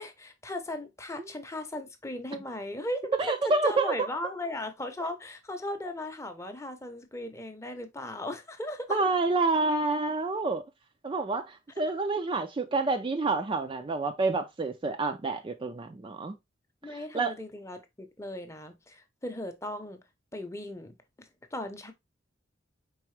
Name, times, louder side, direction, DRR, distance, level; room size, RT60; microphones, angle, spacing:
voice 1, 0.0-9.0 16.8-20.0 20.3-21.9, left 1 dB, 15° left, 0.7 m, -37 dB
voice 2, 3.2-3.9 8.9-10.6 11.0-16.4 16.9-17.3, right 3 dB, 25° right, 0.4 m, -28 dB
4.7 x 3.5 x 3.2 m
head